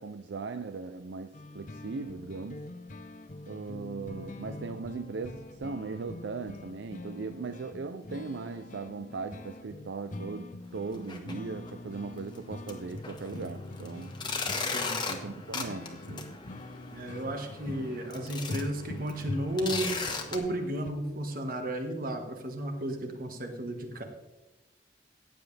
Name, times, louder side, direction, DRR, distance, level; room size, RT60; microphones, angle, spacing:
voice 1, 0.0-2.7 3.5-14.1 15.1-16.3, right 4 dB, 80° right, 0.5 m, -38 dB
sound 1, 1.3-20.9, left 2 dB, 45° left, 0.7 m, -44 dB
sound 2, 10.9-11.3 11.7-11.8 12.3-12.4 12.7-20.4, left 4 dB, 25° left, 1.3 m, -37 dB
voice 2, 14.7-15.1 16.9-20.0 20.3-24.0, right 1 dB, 50° right, 1.7 m, -33 dB
15.0 x 9.2 x 3.4 m
head